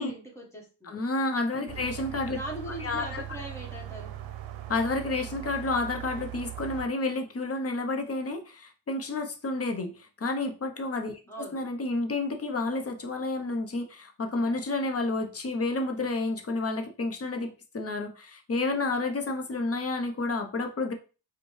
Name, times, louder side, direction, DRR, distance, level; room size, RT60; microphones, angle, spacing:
voice 1, 0.0-1.0 1.6-1.9 2.3-4.1 11.3-11.6, right 1 dB, 5° left, -2 dB, 1.2 m, -41 dB
voice 2, 0.9-2.4 2.8-3.2 4.7-20.9, left 2 dB, 35° left, 5 dB, 0.7 m, -30 dB
sound 1, 1.7-6.9, right 13 dB, 90° right, 0.6 m, -40 dB
5.3 x 2.2 x 3.1 m, 0.33 s
wide cardioid pair, 125°, 44 cm